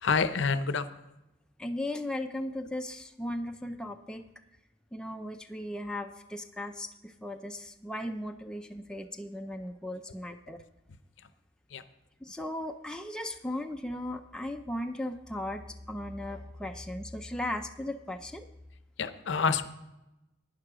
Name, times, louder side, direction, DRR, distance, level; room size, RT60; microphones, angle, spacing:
voice 1, 0.0-0.9 11.7-11.8 19.0-19.7, left 5 dB, 65° left, 12 dB, 0.6 m, -27 dB
voice 2, 1.6-4.2 4.9-10.6 12.2-18.5, left 1 dB, 5° left, 5 dB, 0.4 m, -37 dB
11.5 x 9.6 x 4.9 m, 0.96 s
head